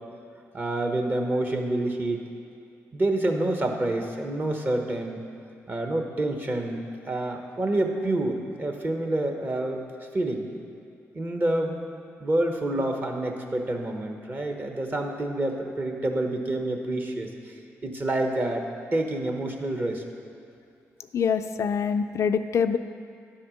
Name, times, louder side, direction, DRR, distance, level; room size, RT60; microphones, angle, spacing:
voice 1, 0.5-2.2 2.9-5.2 5.7-9.8 10.1-10.5 11.1-11.7 12.2-17.5 17.8-20.0, right 1 dB, 35° right, 3 dB, 1.2 m, -28 dB
voice 2, 21.1-22.8, left 6 dB, 60° left, 8 dB, 0.4 m, -24 dB
10.0 x 4.3 x 6.4 m, 2.5 s
supercardioid pair, 65°, 6 cm